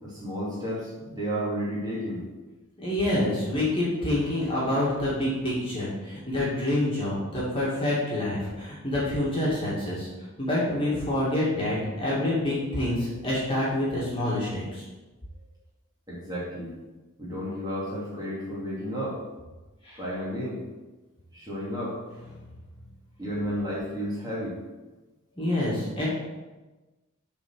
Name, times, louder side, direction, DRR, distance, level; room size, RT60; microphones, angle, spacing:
voice 1, 0.0-2.2 16.1-16.7 17.2-19.2 20.0-20.6 21.3-22.0 23.2-24.6, equal, 20° right, -7 dB, 2.6 m, -32 dB
voice 2, 2.8-10.1 10.4-14.8 19.8-20.0 25.4-26.1, left 1 dB, 25° left, -7 dB, 2.3 m, -27 dB
7.4 x 4.5 x 6.3 m, 1.2 s
head